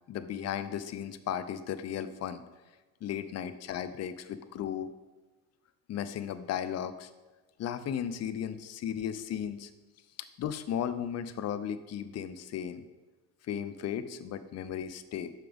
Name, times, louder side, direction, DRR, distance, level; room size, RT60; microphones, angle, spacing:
voice 1, 0.1-2.4 3.0-4.9 5.9-7.1 7.6-9.7 10.4-12.8 13.5-15.3, left 9 dB, 35° left, 12 dB, 0.6 m, -35 dB
8.7 x 5.8 x 3.5 m, 1.2 s
hypercardioid pair, 80°, 48 cm